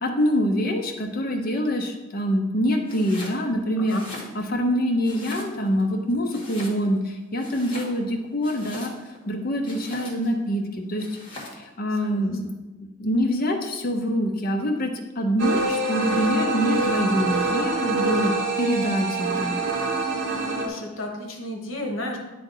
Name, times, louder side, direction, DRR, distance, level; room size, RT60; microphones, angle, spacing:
voice 1, 0.0-4.0 4.3-8.9 9.3-10.6 10.9-11.1 11.6-12.5 12.8-19.5, equal, 45° left, 3 dB, 0.8 m, -25 dB
Domestic sounds home sounds, 2.8-3.4 3.8-4.7 5.0-5.8 6.3-7.0 7.4-9.2 9.6-10.4 11.0-11.6, left 2 dB, 25° left, 1.5 m, -40 dB
sound 1, 15.4-20.7, right 3 dB, 55° right, 1.1 m, -25 dB
voice 2, 20.6-22.2, left 1 dB, 85° left, 2 dB, 1.1 m, -33 dB
10.0 x 3.4 x 3.9 m, 1.1 s
head